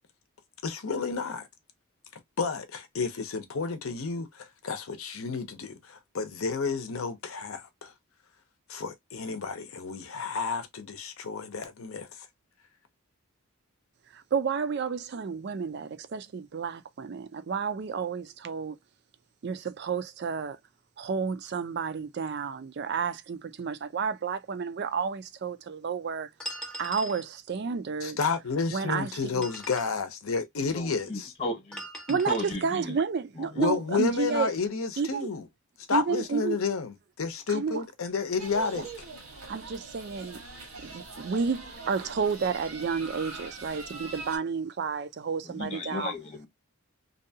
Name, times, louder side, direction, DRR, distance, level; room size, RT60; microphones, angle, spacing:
voice 1, 0.6-1.5 2.4-7.9 8.7-12.1 28.0-31.3 33.6-35.4 35.9-38.9, left 4 dB, 70° left, 0.6 m, -31 dB
voice 2, 14.1-18.8 19.4-20.6 21.0-26.3 26.8-28.2 28.7-29.5 32.1-34.5 35.0-35.3 35.9-36.6 37.5-37.8 38.8-38.9 39.5-40.4 40.8-46.1, right 5 dB, 50° right, 0.3 m, -31 dB
sound 1, 26.4-27.3 29.2-30.0 31.7-32.5, right 1 dB, 5° left, 0.6 m, -40 dB
voice 3, 30.6-33.0 33.4-33.7 45.4-46.5, left 2 dB, 30° left, 0.9 m, -35 dB
sound 2, 38.4-44.4, right 3 dB, 85° right, 1.3 m, -42 dB
2.7 x 2.2 x 2.7 m
head